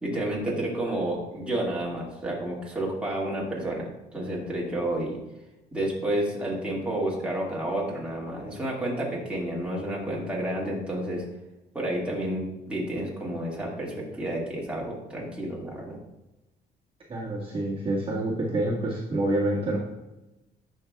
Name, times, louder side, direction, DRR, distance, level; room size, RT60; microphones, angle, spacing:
voice 1, 0.0-5.2 5.7-11.2 11.7-16.0, right 1 dB, 5° right, -5 dB, 2.0 m, -30 dB
voice 2, 17.1-19.8, right 1 dB, 30° right, -5 dB, 1.6 m, -27 dB
10.5 x 5.4 x 2.3 m, 0.98 s
cardioid pair, 110°, 17 cm